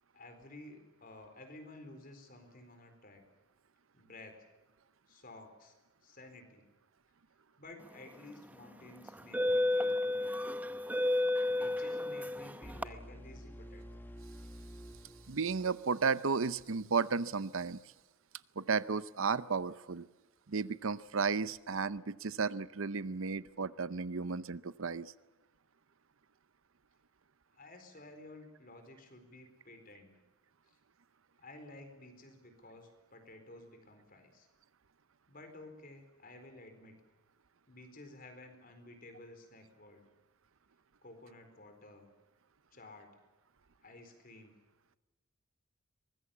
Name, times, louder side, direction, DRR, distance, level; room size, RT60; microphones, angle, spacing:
voice 1, 0.1-3.2 3.9-4.5 5.1-5.8 6.0-6.7 7.6-10.6 11.6-14.0 27.5-30.2 30.7-30.8 31.4-34.5 35.3-37.0 37.7-40.0 41.0-42.1 42.7-43.2 43.8-44.6, left 2 dB, 40° left, 7 dB, 4.3 m, -53 dB
sound 1, 8.1-8.3 9.1-12.9, left 1 dB, 5° right, 0.8 m, -32 dB
sound 2, 12.6-16.5, equal, 10° left, 1.5 m, -50 dB
voice 2, 15.3-17.8 18.6-20.1 20.5-25.1, right 5 dB, 65° right, 16 dB, 0.7 m, -33 dB
23.5 x 20.5 x 7.2 m, 1.1 s
head